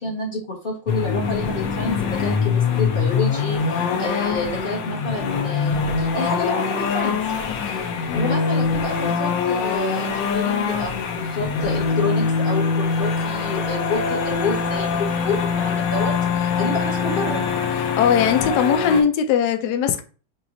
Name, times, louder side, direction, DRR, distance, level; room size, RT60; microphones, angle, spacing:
voice 1, 0.0-7.2 7.7-17.4, left 2 dB, 30° left, 1.1 m, -29 dB
sound 1, 0.9-19.0, left 5 dB, 65° left, 1.2 m, -23 dB
voice 2, 18.0-20.0, left 7 dB, 85° left, 0.8 m, -19 dB
5.8 x 2.7 x 2.6 m
omnidirectional pair, 2.4 m